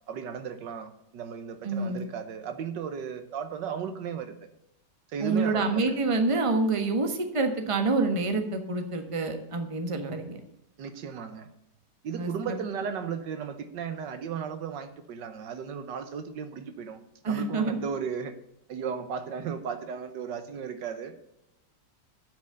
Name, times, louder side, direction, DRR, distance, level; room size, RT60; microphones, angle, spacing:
voice 1, 0.1-4.4 5.1-6.0 10.8-11.5 12.0-17.0 17.3-18.3 18.7-21.1, right 7 dB, 75° right, 9 dB, 1.6 m, -35 dB
voice 2, 1.6-2.1 5.2-10.4 12.2-12.6 17.2-17.8, right 3 dB, 20° right, 6 dB, 1.1 m, -27 dB
9.0 x 6.1 x 7.8 m, 0.84 s
omnidirectional pair, 1.9 m